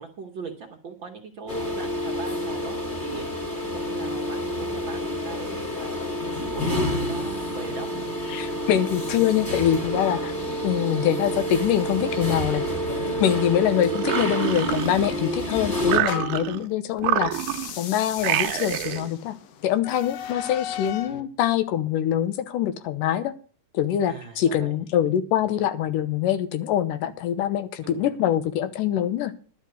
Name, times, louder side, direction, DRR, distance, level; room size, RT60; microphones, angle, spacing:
voice 1, 0.0-8.1 21.0-21.3 24.0-24.7 27.8-28.1, right 5 dB, 55° right, 3 dB, 1.5 m, -39 dB
sound 1, 1.5-16.0, equal, 15° left, 2.1 m, -28 dB
voice 2, 8.3-10.4 10.6-12.6 13.2-17.3 17.8-19.4 19.6-23.3 23.7-29.3, left 11 dB, 85° left, 11 dB, 2.6 m, -24 dB
sound 2, 13.9-15.4 15.8-16.7 17.0-17.8 18.2-19.1, right 14 dB, 80° right, 2.0 m, -27 dB
sound 3, 14.7-16.5 17.2-21.2, left 10 dB, 70° left, 1.6 m, -37 dB
11.5 x 5.9 x 7.9 m, 0.39 s
omnidirectional pair, 3.7 m